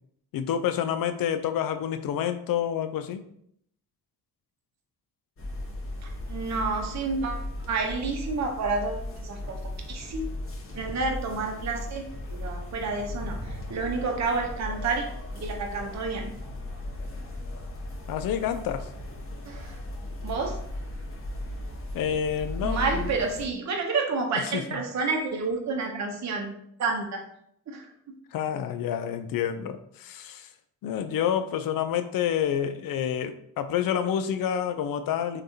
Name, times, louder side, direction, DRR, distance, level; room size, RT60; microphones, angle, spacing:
voice 1, 0.3-3.2 18.1-18.9 21.9-23.1 24.5-24.8 28.3-30.5 30.8-35.4, left 9 dB, 60° left, 9 dB, 0.5 m, -28 dB
sound 1, 5.4-23.5, left 1 dB, 35° left, 0.9 m, -36 dB
voice 2, 6.0-10.3 10.7-15.1 15.4-16.3 19.5-19.8 20.2-20.6 22.6-27.2 27.7-28.1, right 4 dB, 45° right, 2 dB, 0.7 m, -30 dB
3.4 x 2.4 x 2.7 m, 0.69 s
hypercardioid pair, 45°, 39 cm